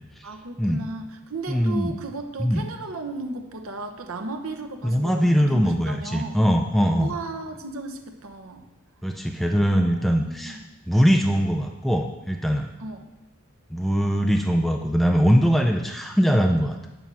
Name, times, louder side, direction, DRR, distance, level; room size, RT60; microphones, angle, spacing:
voice 1, 0.2-6.4 7.0-8.7 9.7-10.7 12.8-13.0, right 2 dB, 75° right, 5 dB, 1.0 m, -35 dB
voice 2, 1.5-1.9 2.4-2.6 4.8-7.1 9.0-10.6 10.9-12.7 13.7-16.9, equal, ahead, 2 dB, 0.4 m, -21 dB
9.2 x 5.5 x 6.1 m, 1.1 s
head